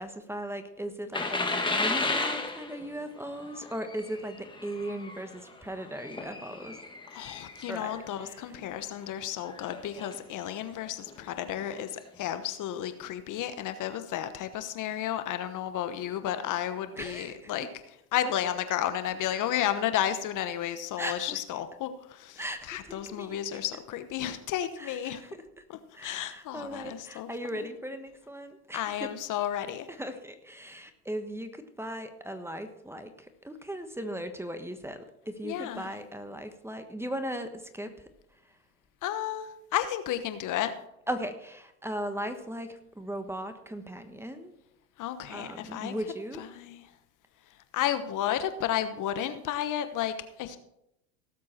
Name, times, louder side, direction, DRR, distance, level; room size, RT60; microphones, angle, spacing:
voice 1, 0.0-6.8 7.7-8.5 17.0-17.7 21.0-21.4 22.4-23.4 24.8-25.6 25.9-29.1 29.9-38.1 41.1-44.5 45.3-46.4, right 1 dB, 5° right, 8 dB, 1.2 m, -38 dB
sound 1, 1.1-8.0 8.6-8.8 9.5-10.2 11.1-11.2 11.6-11.7, left 3 dB, 10° left, 1.9 m, -34 dB
voice 2, 7.1-17.7 18.1-22.4 22.7-25.2 25.7-27.3 27.5-27.7 28.7-29.9 35.4-35.9 39.0-40.7 45.0-45.9 46.4-46.9 47.7-50.6, left 11 dB, 45° left, 10 dB, 1.1 m, -32 dB
17.5 x 7.5 x 4.4 m, 0.81 s
hypercardioid pair, 100°, 45 cm